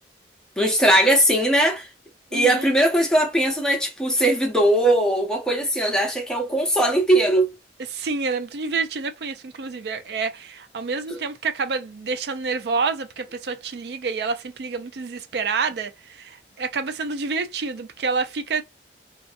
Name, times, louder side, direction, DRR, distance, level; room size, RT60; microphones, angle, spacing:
voice 1, 0.6-1.9 2.3-7.5, right 1 dB, 5° left, 0.7 m, -19 dB
voice 2, 2.3-2.7 7.9-18.6, right 4 dB, 70° right, 0.4 m, -28 dB
2.6 x 2.3 x 2.5 m
head